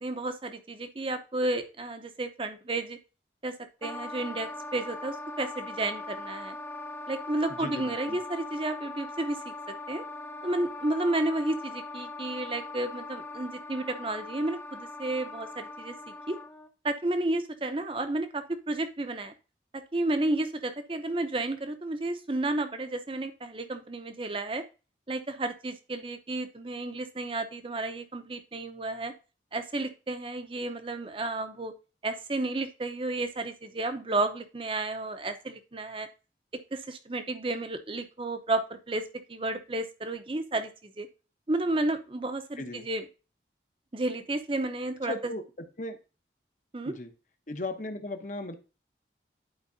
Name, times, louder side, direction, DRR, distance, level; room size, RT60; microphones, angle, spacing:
voice 1, 0.0-3.0 3.4-3.6 3.8-6.6 7.1-10.0 10.4-15.9 16.3-16.4 16.8-19.3 19.7-24.6 25.1-29.1 29.5-31.7 32.0-36.1 36.7-41.1 41.5-43.0 43.9-45.1 46.7-46.9, right 2 dB, 30° right, 9 dB, 0.7 m, -32 dB
Wind instrument woodwind instrument, 3.8-16.7, left 2 dB, 10° left, 0.5 m, -41 dB
voice 2, 7.6-8.2 42.6-42.9 45.1-45.4 45.8-46.0 46.8-47.1 47.5-48.6, left 2 dB, 45° left, 7 dB, 0.9 m, -36 dB
11.0 x 4.6 x 2.7 m, 0.33 s
head